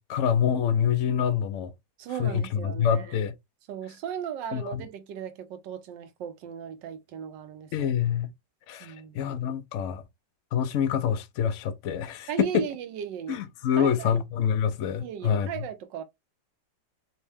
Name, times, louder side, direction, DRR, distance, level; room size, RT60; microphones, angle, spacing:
voice 1, 0.0-1.7 2.2-3.3 4.5-4.9 7.7-8.3 8.7-10.0 10.5-12.6 13.3-15.5, left 8 dB, 80° left, 0.6 m, -26 dB
voice 2, 2.0-3.2 3.7-7.9 8.8-9.2 12.3-13.4 13.8-14.2 15.0-16.0, right 8 dB, 80° right, 1.4 m, -36 dB
4.4 x 2.2 x 3.3 m
omnidirectional pair, 1.9 m